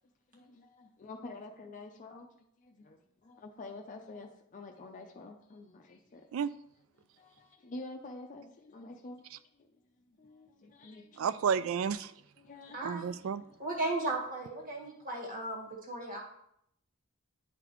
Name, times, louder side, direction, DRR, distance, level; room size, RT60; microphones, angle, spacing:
voice 1, 0.3-2.3 2.6-6.3 7.0-9.2 9.6-9.8 10.1-11.3 12.0-12.1 12.4-13.6, left 2 dB, 40° left, 0.5 m, -48 dB
voice 2, 11.2-12.1 12.8-13.4, right 7 dB, 70° right, 0.3 m, -31 dB
voice 3, 12.7-13.1 13.6-16.2, right 2 dB, 40° right, 1.7 m, -35 dB
10.0 x 3.9 x 3.0 m
head